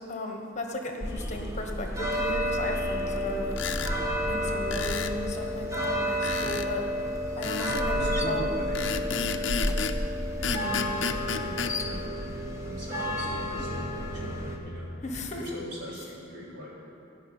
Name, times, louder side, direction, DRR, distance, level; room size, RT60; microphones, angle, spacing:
voice 1, 0.0-3.6 4.3-6.9 7.4-8.5 10.4-10.9 15.0-15.4, left 2 dB, 40° left, 2 dB, 1.2 m, -35 dB
sound 1, 1.0-14.6, equal, 15° right, 1.3 m, -31 dB
sound 2, 3.4-3.7 4.0-12.5, left 4 dB, 15° left, 0.6 m, -44 dB
sound 3, 3.5-4.0 4.7-5.2 6.2-6.7 7.4-7.9 8.7-10.0 10.4-11.7, left 6 dB, 70° left, 0.7 m, -32 dB
voice 2, 7.9-11.1 11.4-14.9 15.3-16.7, right 1 dB, 60° right, -6 dB, 4.1 m, -41 dB
16.5 x 5.9 x 9.6 m, 2.7 s
head